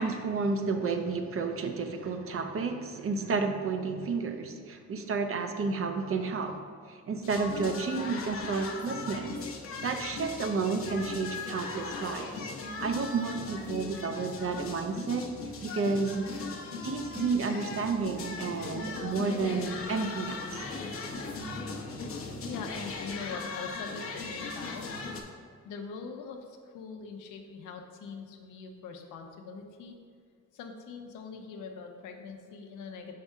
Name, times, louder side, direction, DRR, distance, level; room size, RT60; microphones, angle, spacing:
voice 1, 0.0-9.4 9.8-12.5 12.8-16.5 16.8-20.7, right 4 dB, 45° right, 6 dB, 0.7 m, -31 dB
sound 1, 7.2-25.2, left 3 dB, 45° left, 0.8 m, -38 dB
voice 2, 22.5-24.9 25.6-30.0 30.5-33.1, left 5 dB, 90° left, 3 dB, 0.8 m, -42 dB
5.6 x 3.5 x 5.4 m, 2.1 s
cardioid pair, 90°, 30 cm